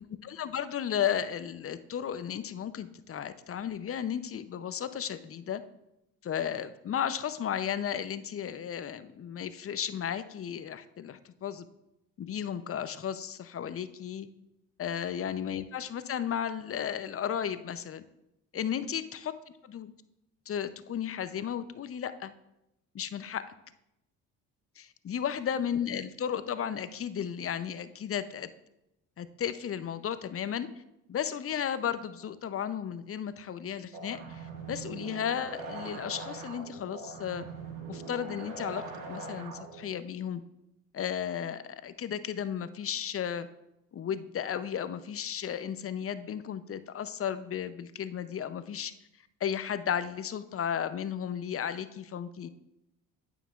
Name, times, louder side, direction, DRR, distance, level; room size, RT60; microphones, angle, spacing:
voice 1, 0.2-5.6 6.2-11.7 12.2-14.3 14.8-18.0 18.5-19.3 19.6-19.9 20.5-22.3 22.9-23.4 24.8-28.5 29.2-30.7 31.1-37.5 37.9-38.8 39.1-40.4 40.9-43.5 43.9-48.9 49.4-52.5, left 9 dB, 35° left, 13 dB, 0.6 m, -34 dB
sound 1, 33.9-39.9, right 3 dB, 85° right, 1.8 m, -42 dB
9.1 x 9.0 x 2.4 m, 0.87 s
hypercardioid pair, 55°, 40 cm